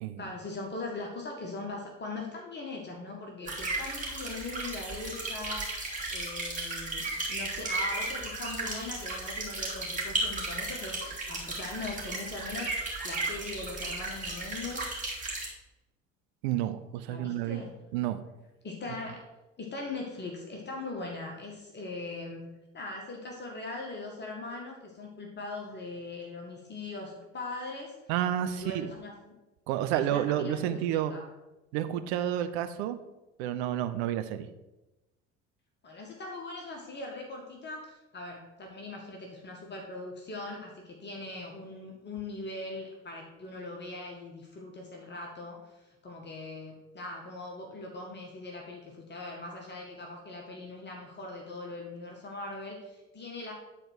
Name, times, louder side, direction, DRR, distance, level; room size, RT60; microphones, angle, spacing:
voice 1, 0.2-14.9 17.1-17.7 18.6-19.2 19.6-22.4 22.7-28.1 28.5-29.3 29.9-31.3 35.8-53.5, left 2 dB, 30° left, 0 dB, 1.8 m, -40 dB
sound 1, 3.4-15.5, right 2 dB, 20° right, 3.2 m, -35 dB
voice 2, 16.4-17.6 17.9-18.2 28.1-28.9 29.7-31.2 31.7-33.0 33.4-34.5, right 11 dB, 60° right, 9 dB, 0.7 m, -30 dB
9.8 x 4.4 x 6.4 m, 1.0 s
figure-of-eight pair, 60°, 37 cm